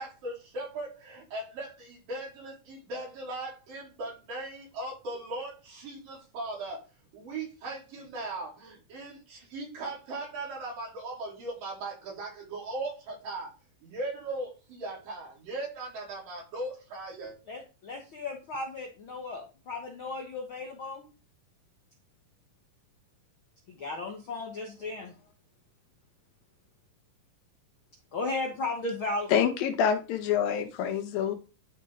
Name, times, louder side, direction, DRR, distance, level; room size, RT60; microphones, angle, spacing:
voice 1, 0.0-6.8 7.1-13.5 13.8-17.3, right 2 dB, 75° right, -4 dB, 5.6 m, -38 dB
voice 2, 17.5-21.1 23.7-25.1 28.1-29.3, left 2 dB, 65° left, 1 dB, 1.3 m, -35 dB
voice 3, 29.3-31.3, left 8 dB, 85° left, 6 dB, 2.8 m, -26 dB
11.5 x 4.5 x 3.8 m, 0.33 s
omnidirectional pair, 4.0 m